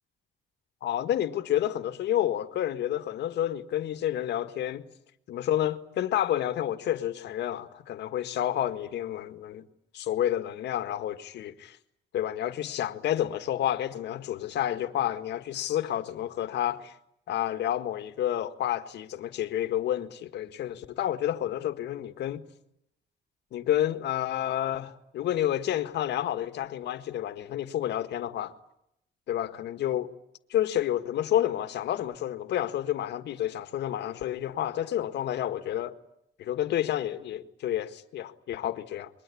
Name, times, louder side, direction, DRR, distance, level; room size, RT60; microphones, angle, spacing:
voice 1, 0.8-4.8 5.3-9.7 9.9-11.8 12.1-16.9 17.3-22.4 23.5-28.5 29.3-30.1 30.5-35.9 36.4-39.1, left 11 dB, 75° left, 1.8 m, -30 dB
29.5 x 22.5 x 8.6 m
cardioid pair, 135°, 18 cm